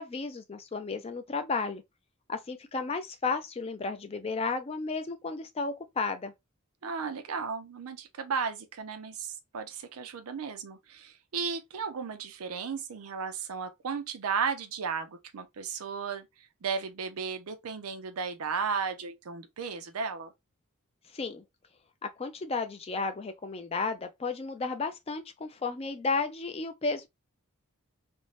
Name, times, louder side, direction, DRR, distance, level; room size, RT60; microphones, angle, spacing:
voice 1, 0.0-1.8 2.3-6.3 21.1-21.4 22.2-27.1, left 4 dB, 25° left, 0.4 m, -33 dB
voice 2, 6.8-16.3 16.6-20.3, right 5 dB, 80° right, 0.5 m, -34 dB
2.6 x 2.1 x 3.1 m
head